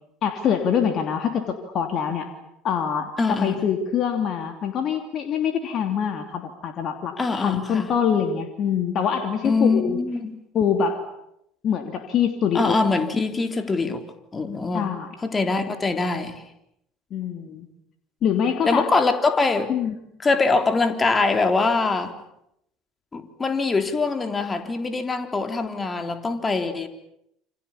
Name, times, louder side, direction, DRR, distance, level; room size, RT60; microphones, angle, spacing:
voice 1, 0.2-2.3 2.6-10.0 10.5-11.0 11.6-12.8 14.7-15.1 17.1-17.7 18.2-18.9 19.7-20.0, left 7 dB, 45° left, 3.1 m, -24 dB
voice 2, 3.2-3.5 7.2-7.9 9.4-10.4 12.5-14.1 14.3-14.9 15.2-16.4 18.7-19.7 20.2-22.1 23.1-26.9, left 3 dB, 25° left, 3.7 m, -23 dB
28.5 x 26.5 x 7.3 m
hypercardioid pair, 65°, 0 cm